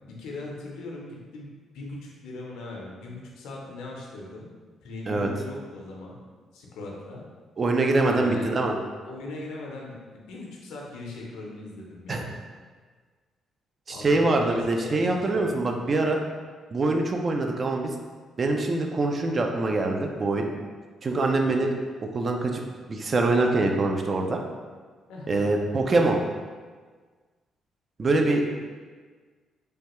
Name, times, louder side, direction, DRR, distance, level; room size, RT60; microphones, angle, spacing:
voice 1, 0.0-1.5 1.7-4.5 4.8-6.2 6.5-7.2 8.1-8.5 9.0-12.3 13.9-16.0 21.4-21.6 25.1-25.6, left 2 dB, 90° left, -2 dB, 0.6 m, -39 dB
voice 2, 7.6-8.7 12.1-12.2 13.9-16.2 16.7-17.9 18.4-20.5 21.0-21.7 22.0-22.6 22.9-24.4 25.3-26.2 28.0-28.4, right 2 dB, 40° right, 3 dB, 0.4 m, -24 dB
3.2 x 2.2 x 2.9 m, 1.5 s
cardioid pair, 90°, 0 cm